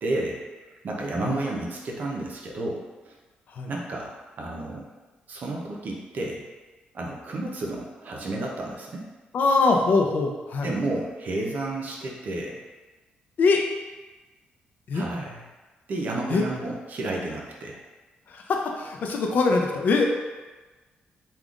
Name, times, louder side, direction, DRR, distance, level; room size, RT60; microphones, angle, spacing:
voice 1, 0.0-3.1 3.7-4.1 4.4-4.9 5.3-6.4 6.9-9.1 10.6-12.6 14.9-15.5 15.9-17.8, right 2 dB, 55° right, -1 dB, 0.6 m, -31 dB
voice 2, 9.3-10.7 13.4-13.6 14.9-15.0 16.3-16.4 18.3-20.1, left 3 dB, 60° left, 2 dB, 0.4 m, -22 dB
3.5 x 2.3 x 2.4 m, 1.2 s
cardioid pair, 95°, 3 cm